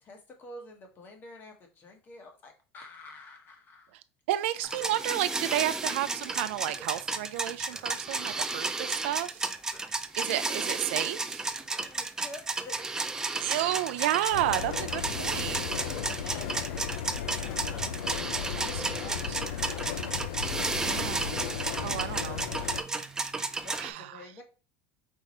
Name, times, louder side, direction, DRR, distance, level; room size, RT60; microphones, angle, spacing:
voice 1, 0.0-3.9 5.4-5.5 7.9-8.1 11.6-12.8 13.2-13.3 14.0-14.4 15.6-20.0 23.6-24.4, left 2 dB, 35° left, 1.2 m, -49 dB
voice 2, 4.3-9.5 10.2-11.5 13.4-15.6 18.6-18.8 19.3-19.8 20.8-21.4 21.8-22.8 23.8-24.2, right 13 dB, 90° right, 0.4 m, -32 dB
sound 1, 4.6-23.9, right 3 dB, 10° right, 0.4 m, -33 dB
sound 2, 14.3-22.8, left 9 dB, 90° left, 0.5 m, -35 dB
4.6 x 2.4 x 4.2 m
supercardioid pair, 135°, 6 cm